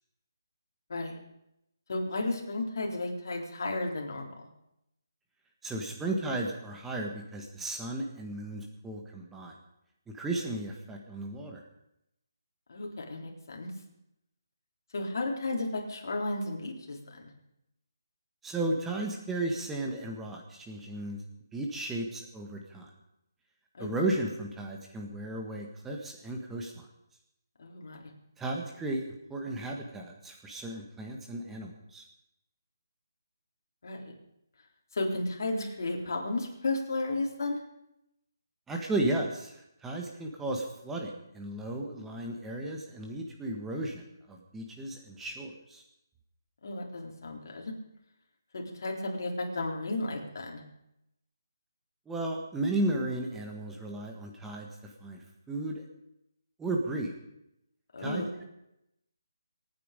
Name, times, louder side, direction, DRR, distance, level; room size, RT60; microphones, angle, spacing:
voice 1, 1.9-4.3 12.7-13.7 14.9-17.3 23.7-23.9 27.6-28.1 33.8-34.0 34.9-37.6 46.6-47.7 48.5-50.6 57.9-58.3, left 2 dB, 55° left, 1 dB, 3.9 m, -33 dB
voice 2, 5.6-9.5 10.1-11.6 18.4-21.2 21.5-22.9 23.8-26.9 28.4-29.0 29.3-32.0 38.7-44.0 44.3-45.8 52.1-54.7 55.0-55.8 56.6-57.1 58.0-58.4, right 2 dB, 5° right, 1 dB, 1.6 m, -34 dB
25.5 x 9.5 x 5.2 m, 0.83 s
hypercardioid pair, 165°, 2 cm